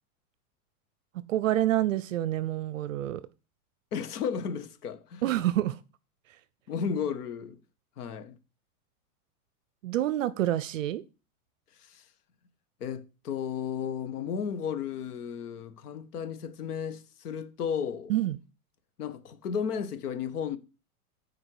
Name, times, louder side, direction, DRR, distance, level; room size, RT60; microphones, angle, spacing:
voice 1, 1.3-3.2 5.2-5.8 9.8-11.0 18.1-18.4, right 13 dB, 60° right, 0.6 m, -27 dB
voice 2, 3.9-5.2 6.7-7.6 8.0-8.4 11.7-12.0 12.8-18.1 19.0-20.6, left 7 dB, 85° left, 1.6 m, -34 dB
14.0 x 4.8 x 4.8 m
supercardioid pair, 180°, 45 cm